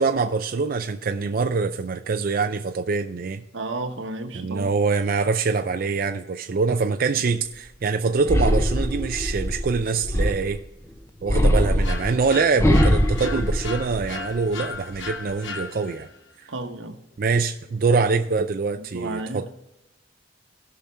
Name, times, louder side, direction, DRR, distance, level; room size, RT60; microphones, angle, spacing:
voice 1, 0.0-3.4 4.3-10.6 11.2-16.1 16.4-16.5 17.2-19.5, right 4 dB, 50° right, 0.4 m, -24 dB
voice 2, 3.5-4.7 16.5-17.0 18.9-19.6, right 2 dB, 85° right, 1.2 m, -32 dB
sound 1, 8.2-10.7 11.3-14.3 14.7-15.3, equal, 15° left, 0.8 m, -22 dB
sound 2, 11.8-16.2, left 5 dB, 75° left, 1.0 m, -36 dB
16.5 x 5.9 x 3.4 m
head